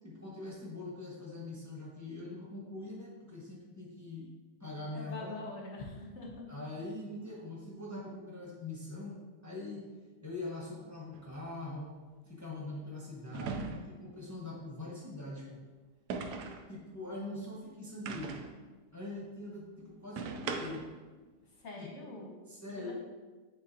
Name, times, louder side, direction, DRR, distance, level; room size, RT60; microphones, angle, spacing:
voice 1, 0.0-4.3 4.6-5.4 6.5-9.9 10.2-11.9 12.2-15.6 16.7-18.4 18.9-20.8 21.7-21.9 22.5-22.9, left 2 dB, 15° left, -5 dB, 0.8 m, -43 dB
voice 2, 4.9-6.4 21.6-22.4 22.8-22.9, left 2 dB, 50° left, -1 dB, 1.0 m, -44 dB
sound 1, 11.1-11.3 13.3-14.1 16.1-16.7 18.1-18.6 20.2-21.0, right 4 dB, 70° right, 1.1 m, -39 dB
9.6 x 3.7 x 2.8 m, 1.3 s
omnidirectional pair, 1.9 m